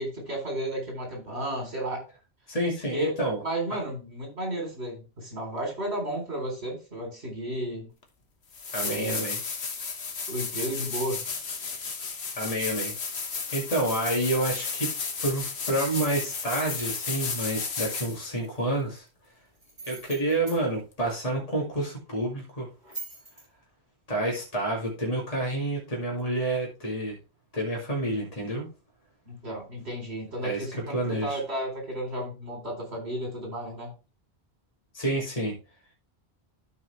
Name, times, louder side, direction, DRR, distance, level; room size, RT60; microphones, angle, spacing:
voice 1, 0.0-2.1 2.9-7.9 8.8-9.3 10.3-11.3 29.3-33.9, right 1 dB, 80° right, 1 dB, 3.9 m, -33 dB
voice 2, 2.5-3.4 8.7-9.4 12.3-13.0 13.5-14.9 15.2-19.0 19.8-22.7 24.1-27.2 27.5-28.7 30.4-30.6 30.9-31.4 34.9-35.6, right 1 dB, 35° left, -2 dB, 2.4 m, -29 dB
sound 1, 8.0-8.1 8.5-18.3 21.1-21.2, left 5 dB, 80° left, 1.5 m, -33 dB
sound 2, 15.9-16.9 19.6-20.6 22.8-23.4, right 3 dB, 45° right, 3.3 m, -42 dB
13.0 x 4.8 x 3.2 m, 0.31 s
omnidirectional pair, 1.1 m